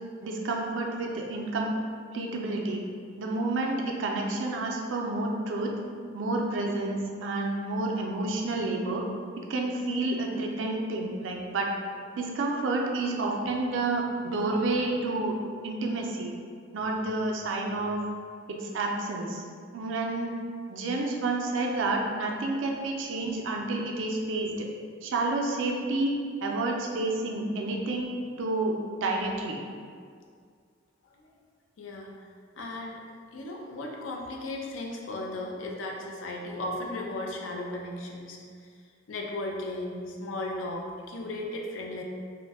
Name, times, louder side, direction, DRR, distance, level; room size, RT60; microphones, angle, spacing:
voice 1, 0.2-1.7 2.1-2.8 3.2-5.7 6.1-9.1 9.4-11.8 12.2-15.4 15.6-16.3 16.7-18.0 18.5-19.4 19.7-20.3 20.7-24.7 25.0-26.2 26.4-28.1 28.4-29.6, right 2 dB, 75° right, 0 dB, 0.4 m, -29 dB
voice 2, 31.8-32.3 32.6-33.0 33.3-38.7 39.1-42.0, left 2 dB, 85° left, 1 dB, 0.4 m, -36 dB
2.5 x 2.1 x 3.4 m, 2.1 s
head